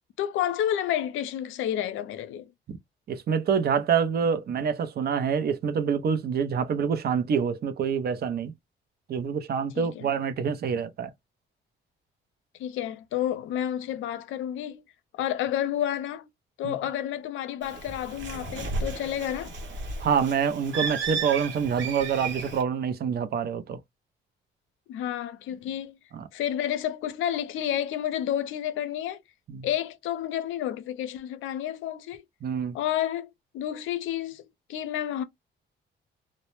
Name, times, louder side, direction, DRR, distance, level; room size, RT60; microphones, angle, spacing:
voice 1, 0.2-2.5 9.8-10.1 12.6-14.8 15.1-16.3 16.6-19.5 24.9-26.0 26.3-29.2 29.6-32.2 32.7-35.2, left 11 dB, 80° left, 0.5 m, -30 dB
voice 2, 3.1-8.5 9.1-11.1 16.6-16.8 20.0-23.8 26.1-26.2 29.5-29.7 32.4-32.8, right 7 dB, 55° right, 0.6 m, -26 dB
Bird, 17.6-22.6, right 4 dB, 70° right, 0.9 m, -34 dB
2.1 x 2.0 x 2.9 m
cardioid pair, 90°, 20 cm